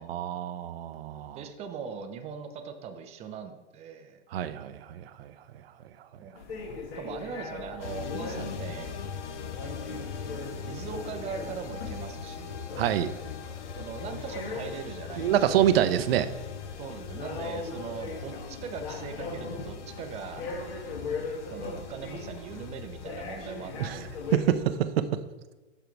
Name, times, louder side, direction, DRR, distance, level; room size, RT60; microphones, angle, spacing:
voice 1, 0.0-1.4 4.3-5.3 12.8-13.1 15.2-16.3 23.8-24.0 24.3-25.2, right 11 dB, 55° right, 11 dB, 0.7 m, -26 dB
voice 2, 1.3-4.2 6.2-6.4 6.9-9.0 9.6-10.1 10.7-12.6 13.8-15.3 16.8-20.5 21.5-24.2, right 6 dB, 20° right, 7 dB, 0.6 m, -40 dB
sound 1, 6.4-24.8, left 3 dB, 55° left, 1.7 m, -40 dB
sound 2, 7.8-24.4, left 6 dB, 85° left, 0.8 m, -41 dB
7.1 x 5.6 x 4.6 m, 1.2 s
hypercardioid pair, 130°, 35 cm